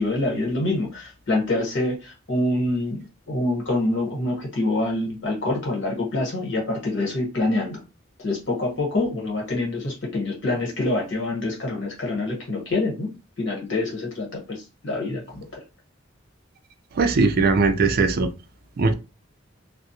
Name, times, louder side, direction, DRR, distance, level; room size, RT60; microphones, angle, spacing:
voice 1, 0.0-7.8 8.2-13.1 13.4-15.6, left 2 dB, 70° left, 1.2 m, -26 dB
voice 2, 17.0-18.3 18.8-18.9, right 4 dB, 50° right, 0.4 m, -19 dB
2.3 x 2.0 x 2.7 m
head